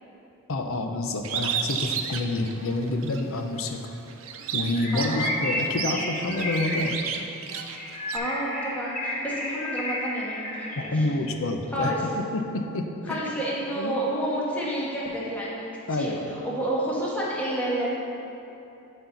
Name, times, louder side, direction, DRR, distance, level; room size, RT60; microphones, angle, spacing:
voice 1, 0.5-3.8 4.5-7.0 10.8-13.2 13.7-14.0 15.9-16.2, left 2 dB, 70° left, 4 dB, 0.6 m, -28 dB
Bird, 1.2-3.2 3.7-8.2, right 8 dB, 65° right, 0.5 m, -32 dB
Bird 2, 4.7-11.1, left 1 dB, 35° left, 1.1 m, -32 dB
voice 2, 4.9-5.3 7.9-11.0 11.7-12.0 13.1-15.7 15.9-17.9, right 1 dB, 5° left, -7 dB, 1.3 m, -30 dB
11.0 x 4.3 x 3.9 m, 2.9 s
head